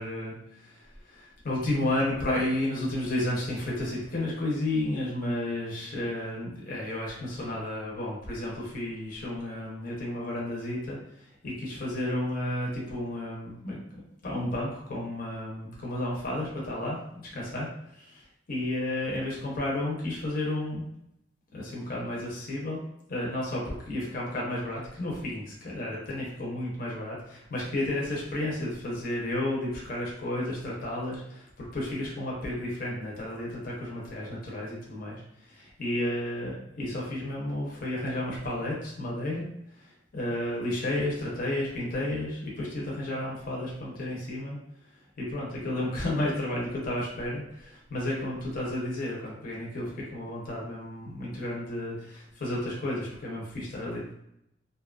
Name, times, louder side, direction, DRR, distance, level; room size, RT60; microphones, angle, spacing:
voice 1, 0.0-20.9 21.5-22.8 23.1-44.6 45.2-54.1, left 1 dB, 50° left, -4 dB, 0.7 m, -32 dB
2.6 x 2.2 x 2.4 m, 0.78 s
head